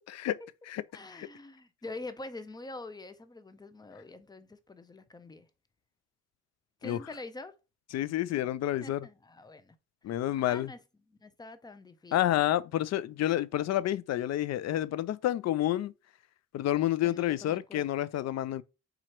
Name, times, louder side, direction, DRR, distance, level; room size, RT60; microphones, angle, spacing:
voice 1, 0.9-5.5 6.8-7.6 8.8-9.7 10.5-10.8 11.1-12.5 17.0-17.9, left 2 dB, 15° left, 0.6 m, -45 dB
voice 2, 7.9-9.1 10.0-10.7 12.1-15.9 16.5-18.6, left 13 dB, 60° left, 0.5 m, -29 dB
3.8 x 3.0 x 4.4 m
cardioid pair, 90°, 30 cm